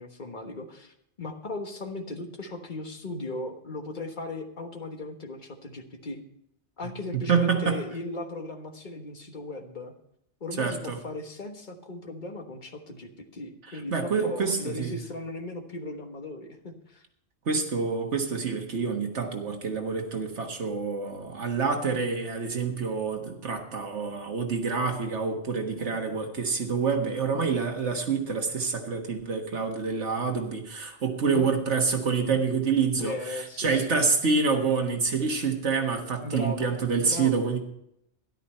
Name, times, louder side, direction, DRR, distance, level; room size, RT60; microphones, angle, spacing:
voice 1, 0.0-6.2 6.8-9.9 10.4-17.0 25.8-26.2 31.2-31.5 33.0-34.0 36.2-36.7 37.0-37.5, left 2 dB, 45° left, 4 dB, 1.4 m, -37 dB
voice 2, 7.1-7.8 10.6-11.0 13.7-15.0 17.4-37.6, right 5 dB, 85° right, 4 dB, 1.8 m, -27 dB
13.0 x 11.0 x 4.3 m, 0.76 s
omnidirectional pair, 1.2 m